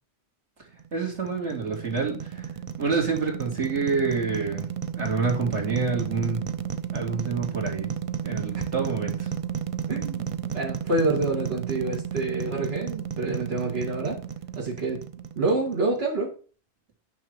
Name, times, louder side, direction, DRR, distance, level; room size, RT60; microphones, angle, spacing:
sound 1, 0.8-16.0, right 8 dB, 40° right, 0.5 m, -33 dB
voice 1, 0.9-2.5 2.8-4.7 4.9-6.4 6.9-7.9 8.2-9.3, right 4 dB, 80° right, 0 dB, 2.7 m, -27 dB
voice 2, 9.9-14.2 14.6-15.0 15.4-16.3, right 2 dB, 60° right, -3 dB, 2.3 m, -27 dB
9.9 x 5.9 x 4.7 m, 0.39 s
omnidirectional pair, 1.2 m